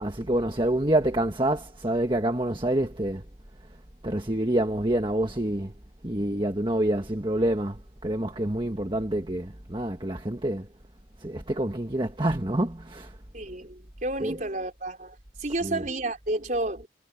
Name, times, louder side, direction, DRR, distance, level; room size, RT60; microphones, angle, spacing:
voice 1, 0.0-3.2 4.0-5.7 6.0-10.7 11.2-13.1 14.2-14.4 15.6-15.8, right 1 dB, 25° right, 1.4 m, -27 dB
voice 2, 13.3-15.1 15.4-16.9, right 2 dB, 45° right, 4.5 m, -31 dB
head